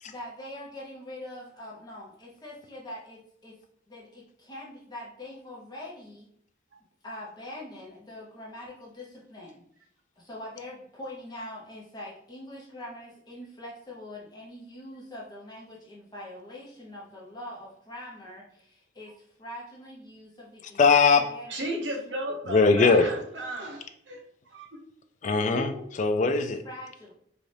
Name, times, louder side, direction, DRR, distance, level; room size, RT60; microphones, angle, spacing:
voice 1, 0.0-3.6 3.9-6.3 7.0-9.6 10.2-21.7 26.6-27.1, left 1 dB, 20° left, -5 dB, 0.7 m, -43 dB
voice 2, 20.8-21.3 22.5-23.1 25.2-26.6, left 4 dB, 40° left, 7 dB, 0.3 m, -21 dB
voice 3, 21.5-24.2 24.5-24.7 25.7-25.8, right 1 dB, 70° right, -1 dB, 0.9 m, -34 dB
4.0 x 2.3 x 3.2 m, 0.68 s
head